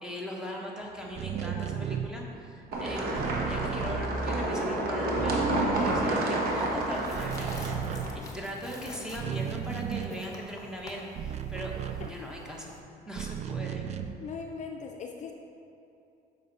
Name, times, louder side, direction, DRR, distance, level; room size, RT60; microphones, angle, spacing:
voice 1, 0.0-12.8 13.1-13.8, equal, 5° right, -2 dB, 1.2 m, -40 dB
sound 1, 1.1-4.7 5.0-6.7 7.0-12.6 13.1-14.4, right 8 dB, 40° right, 0.4 m, -36 dB
sound 2, 2.7-8.2, right 1 dB, 60° right, 1.3 m, -29 dB
sound 3, 5.7-12.8, left 2 dB, 20° left, 1.0 m, -49 dB
voice 2, 14.2-15.3, left 5 dB, 45° left, 2 dB, 0.5 m, -40 dB
7.4 x 5.4 x 4.1 m, 2.8 s
cardioid pair, 110°, 17 cm